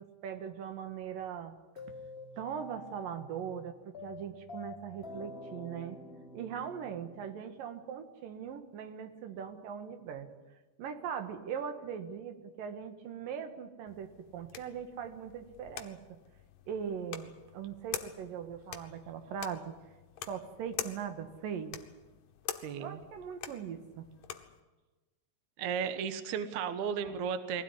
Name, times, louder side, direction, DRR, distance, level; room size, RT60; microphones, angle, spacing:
voice 1, 0.0-1.6 2.4-6.0 6.3-10.3 10.8-16.2 16.7-19.7 20.3-21.8 22.8-24.1 27.0-27.2, right 8 dB, 65° right, 7 dB, 2.6 m, -40 dB
sound 1, 1.7-7.9, left 3 dB, 25° left, 1.2 m, -48 dB
sound 2, 13.9-24.6, left 10 dB, 65° left, 2.3 m, -46 dB
voice 2, 22.6-23.0 25.6-27.6, right 7 dB, 80° right, 10 dB, 1.7 m, -34 dB
22.5 x 16.5 x 9.8 m, 1.2 s
omnidirectional pair, 5.2 m